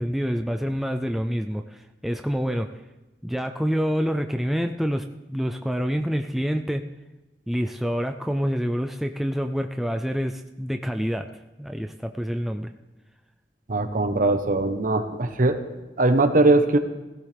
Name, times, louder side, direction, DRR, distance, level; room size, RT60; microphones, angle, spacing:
voice 1, 0.0-2.8 3.2-6.8 7.5-11.3 11.6-12.7, equal, ahead, 5 dB, 0.4 m, -27 dB
voice 2, 13.7-15.6 16.0-16.8, right 2 dB, 50° right, 8 dB, 1.0 m, -20 dB
17.5 x 15.5 x 3.4 m, 1.1 s
head